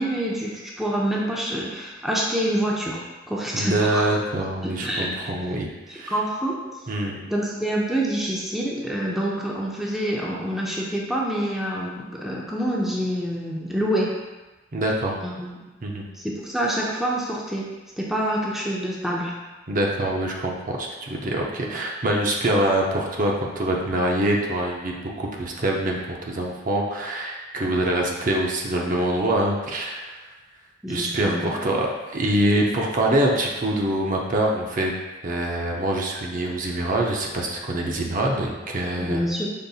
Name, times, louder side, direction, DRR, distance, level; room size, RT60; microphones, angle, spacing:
voice 1, 0.0-3.0 3.3-4.1 4.6-5.3 5.9-6.6 7.3-14.1 15.2-15.5 16.2-17.7 18.0-19.3 30.8-31.6 39.0-39.5, right 1 dB, ahead, -4 dB, 0.5 m, -26 dB
voice 2, 3.5-6.2 6.9-7.2 14.7-15.2 15.8-16.0 19.7-30.1 30.9-34.9 35.2-39.2, right 1 dB, 45° right, -1 dB, 0.6 m, -24 dB
5.3 x 4.0 x 2.4 m, 1.2 s
head